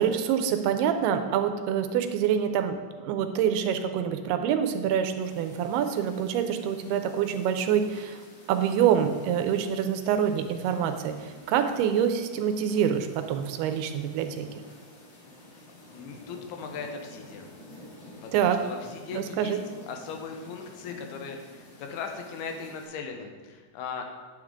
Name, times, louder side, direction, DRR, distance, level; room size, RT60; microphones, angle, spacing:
voice 1, 0.0-8.2 8.5-14.5 18.3-18.6 19.1-19.6, right 8 dB, 85° right, 8 dB, 2.6 m, -26 dB
sound 1, 5.2-22.8, left 1 dB, 65° left, 4.1 m, -50 dB
voice 2, 15.7-17.5 18.2-19.6 19.9-24.0, left 5 dB, 80° left, 4 dB, 2.8 m, -39 dB
9.1 x 8.5 x 3.7 m, 1.5 s
omnidirectional pair, 4.6 m